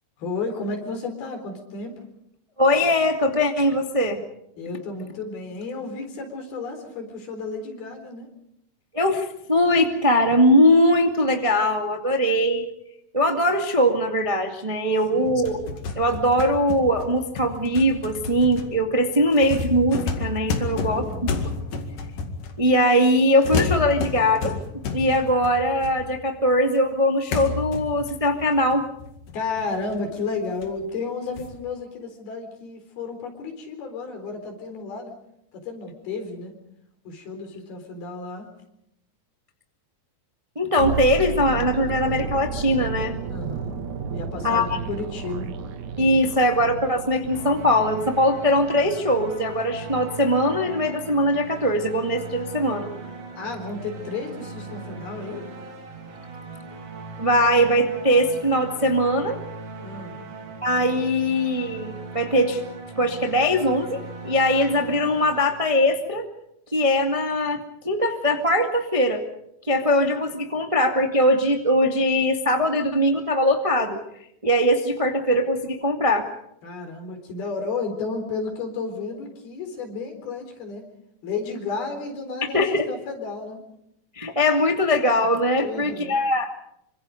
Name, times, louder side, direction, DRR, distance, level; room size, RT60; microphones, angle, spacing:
voice 1, 0.2-2.0 4.6-8.3 15.1-15.3 20.6-21.3 29.3-35.2 35.5-36.6 37.1-38.5 43.3-43.9 44.1-45.5 53.4-55.4 59.8-60.2 76.6-80.9 81.2-83.6 85.6-86.2, left 4 dB, 85° left, 5 dB, 5.9 m, -32 dB
voice 2, 2.6-4.2 8.9-12.6 13.1-15.5 15.9-21.0 22.6-24.5 24.9-28.8 40.5-43.2 44.4-44.8 46.0-52.9 57.2-59.4 60.6-62.6 63.0-66.2 66.7-69.2 69.7-74.0 74.4-76.3 82.5-82.8 84.1-86.5, equal, 20° right, 4 dB, 1.0 m, -21 dB
sound 1, 15.3-22.8 23.4-26.4 26.8-26.9 27.3-30.2 30.6-30.7 31.4-31.6, left 4 dB, 65° left, 3.6 m, -31 dB
sound 2, 40.8-50.8 51.0-51.2, right 5 dB, 60° right, 2.7 m, -33 dB
sound 3, 47.3-66.2, right 3 dB, 85° right, 4.8 m, -39 dB
26.5 x 25.0 x 5.2 m, 0.77 s
omnidirectional pair, 4.3 m